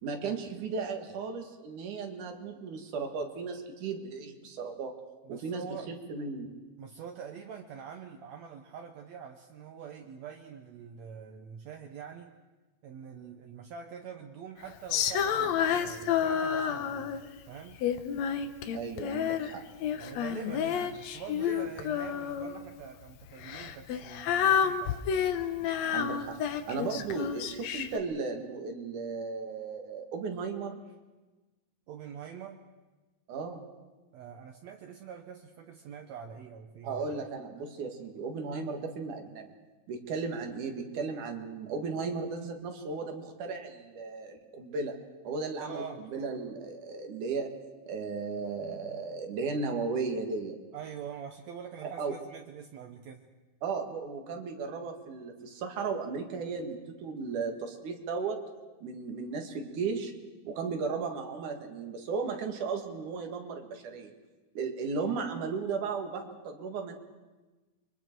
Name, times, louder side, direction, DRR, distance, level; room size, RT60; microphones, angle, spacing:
voice 1, 0.0-4.9 5.3-6.5 18.7-19.6 25.8-26.4 26.7-30.8 33.3-33.7 36.8-39.5 39.9-45.0 45.2-45.8 46.1-47.5 47.9-50.6 51.8-52.2 53.6-58.4 58.8-60.1 60.4-64.1 64.5-66.9, right 4 dB, 85° right, 5 dB, 3.4 m, -35 dB
voice 2, 5.3-5.9 6.8-12.4 12.8-17.1 17.5-17.8 19.9-25.1 31.9-32.6 34.1-37.0 45.6-46.0 50.7-53.3, right 7 dB, 70° right, 3 dB, 2.1 m, -44 dB
Female singing, 14.9-17.3 17.8-19.5 19.8-22.6 23.4-28.0, left 8 dB, 70° left, 2.1 m, -30 dB
29.5 x 24.0 x 4.6 m, 1.2 s
omnidirectional pair, 3.4 m